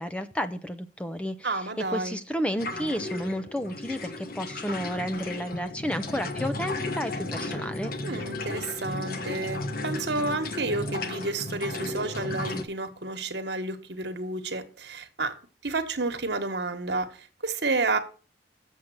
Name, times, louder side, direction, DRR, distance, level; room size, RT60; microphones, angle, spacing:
voice 1, 0.0-1.5 1.9-7.9, equal, 5° left, 0.6 m, -31 dB
voice 2, 1.4-2.2 8.0-15.3 15.6-18.0, right 3 dB, 65° right, 1.4 m, -30 dB
sound 1, 2.6-12.6, left 2 dB, 50° left, 1.2 m, -34 dB
7.6 x 7.2 x 7.6 m
head